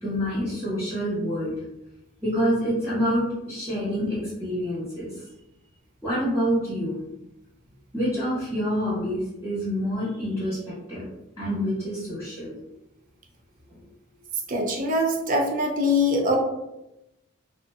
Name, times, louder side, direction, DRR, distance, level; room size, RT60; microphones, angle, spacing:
voice 1, 0.0-1.6 2.2-5.1 6.0-7.0 7.9-11.1 11.4-12.5, equal, 10° right, -9 dB, 0.9 m, -27 dB
voice 2, 14.5-16.4, left 1 dB, 40° right, 1 dB, 0.4 m, -23 dB
2.6 x 2.0 x 2.3 m, 0.90 s
head